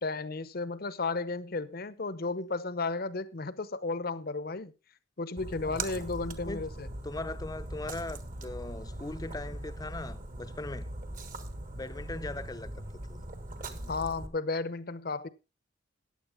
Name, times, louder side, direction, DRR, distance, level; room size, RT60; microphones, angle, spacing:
voice 1, 0.0-4.7 5.2-6.9 13.9-15.3, left 3 dB, 50° left, 0.8 m, -33 dB
Splash splatter, 5.4-14.3, right 1 dB, 45° right, 1.4 m, -40 dB
voice 2, 5.6-6.0 6.4-6.6 7.0-10.9 11.7-13.2, left 2 dB, 20° left, 0.7 m, -40 dB
14.5 x 9.8 x 3.5 m
head